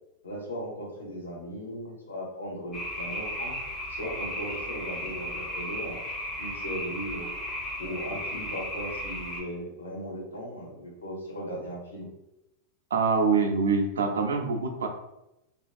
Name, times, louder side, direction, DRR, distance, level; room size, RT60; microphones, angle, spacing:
voice 1, 0.2-3.6 3.9-6.0 6.4-7.3 7.8-12.1, equal, 70° left, -4 dB, 0.9 m, -37 dB
sound 1, 2.7-9.4, equal, 15° left, 0.5 m, -35 dB
voice 2, 12.9-14.9, right 4 dB, 65° right, 4 dB, 0.4 m, -25 dB
2.8 x 2.4 x 2.4 m, 0.90 s
figure-of-eight pair, 90°, 0 cm